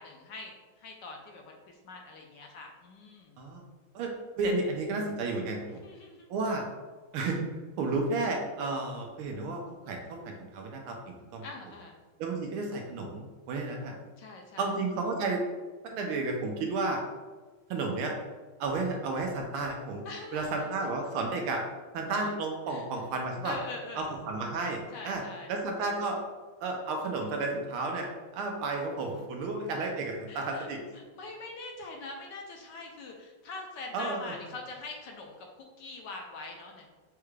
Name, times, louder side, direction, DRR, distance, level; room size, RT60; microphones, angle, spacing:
voice 1, 0.0-3.4 5.7-6.3 11.4-12.0 14.2-14.7 20.0-20.6 22.1-22.3 22.7-22.8 23.4-24.1 24.9-25.5 30.3-30.7 30.9-36.9, left 2 dB, 70° left, 1 dB, 1.1 m, -43 dB
voice 2, 4.4-5.8 6.3-6.6 7.1-7.4 7.8-11.5 12.2-13.9 14.6-15.4 15.8-17.0 17.7-18.1 18.6-20.0 20.3-21.6 21.9-23.6 24.0-25.2 25.5-26.2 26.6-30.8 33.9-34.2, right 3 dB, 85° right, 2 dB, 1.6 m, -32 dB
6.7 x 2.4 x 3.1 m, 1.3 s
omnidirectional pair, 2.3 m